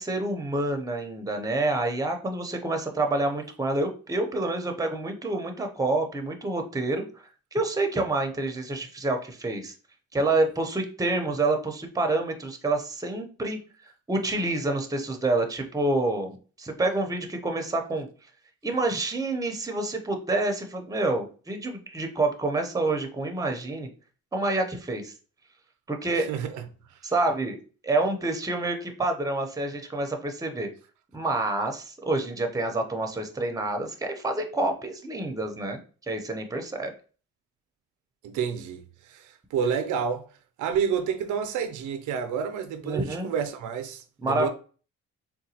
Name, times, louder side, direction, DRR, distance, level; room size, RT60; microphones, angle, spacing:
voice 1, 0.0-7.1 7.5-9.7 10.1-13.6 14.1-18.1 18.6-23.9 24.3-25.1 25.9-26.3 27.0-27.6 27.8-30.7 31.1-36.9 42.8-43.3 44.2-44.5, right 2 dB, 10° right, 0.7 m, -28 dB
voice 2, 26.2-26.6 38.2-40.2 40.6-44.5, right 7 dB, 80° right, 0.5 m, -29 dB
3.8 x 2.3 x 2.8 m
cardioid pair, 90°, 30 cm